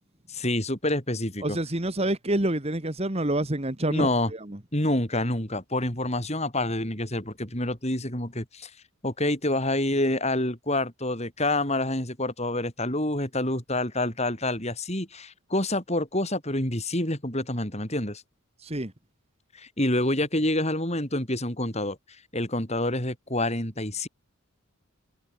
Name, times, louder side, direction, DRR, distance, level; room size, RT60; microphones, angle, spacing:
voice 1, 0.3-1.6 3.9-4.3 4.7-8.7 9.0-18.2 19.5-22.0 22.3-24.1, left 1 dB, 30° left, 6.4 m, -27 dB
voice 2, 1.4-4.6 18.6-18.9, right 1 dB, 30° right, 1.8 m, -27 dB
head